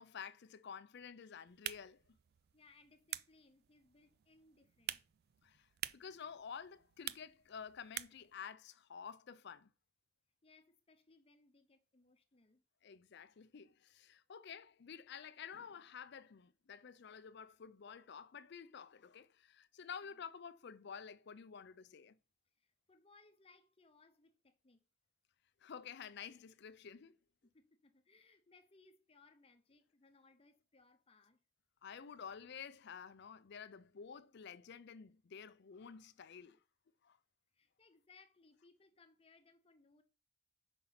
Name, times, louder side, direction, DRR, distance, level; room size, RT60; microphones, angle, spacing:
voice 1, 0.0-2.0 5.4-5.7 5.9-9.7 12.8-22.2 25.6-27.2 31.8-36.6 37.0-37.2, left 7 dB, 50° left, 0.4 m, -51 dB
sound 1, 1.5-8.3, right 13 dB, 45° right, 0.3 m, -49 dB
voice 2, 2.5-5.0 10.4-12.6 20.0-20.2 22.6-24.8 27.5-31.4 37.5-40.0, left 3 dB, 25° left, 0.8 m, -67 dB
5.7 x 5.3 x 5.6 m
head